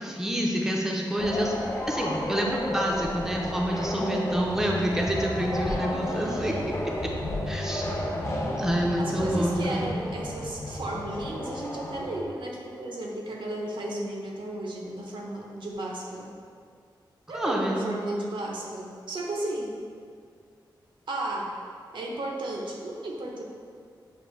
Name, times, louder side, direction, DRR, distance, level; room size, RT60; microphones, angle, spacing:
voice 1, 0.0-1.5 1.9-6.5 7.5-7.9 8.6-9.8 17.3-17.9, equal, 5° right, -1 dB, 0.4 m, -27 dB
sound 1, 1.2-12.2, left 1 dB, 30° left, 0.7 m, -32 dB
voice 2, 5.6-6.7 9.0-16.3 17.3-19.8 21.1-21.6 21.9-23.4, right 1 dB, 80° right, -1 dB, 0.7 m, -34 dB
6.3 x 2.6 x 3.1 m, 2.1 s
wide cardioid pair, 130°, 8 cm